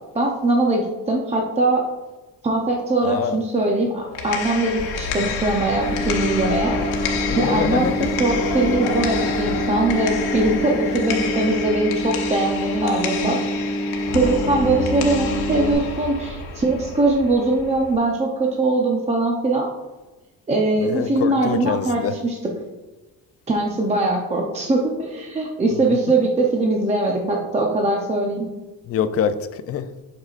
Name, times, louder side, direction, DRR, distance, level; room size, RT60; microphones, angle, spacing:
voice 1, 0.1-1.8 2.4-6.8 7.4-7.9 8.2-13.4 14.1-19.7 20.5-22.4 23.5-28.5, right 2 dB, 20° right, 0.6 m, -21 dB
voice 2, 3.0-3.4 7.3-8.1 20.8-22.2 25.7-25.8 28.9-29.9, left 8 dB, 40° left, 0.4 m, -25 dB
sound 1, 4.0-17.9, left 5 dB, 90° left, 1.1 m, -29 dB
sound 2, 4.8-11.0, left 3 dB, 60° left, 2.0 m, -33 dB
sound 3, 5.7-15.7, equal, 60° right, 2.1 m, -27 dB
7.9 x 5.5 x 2.5 m
cardioid pair, 145°, 37 cm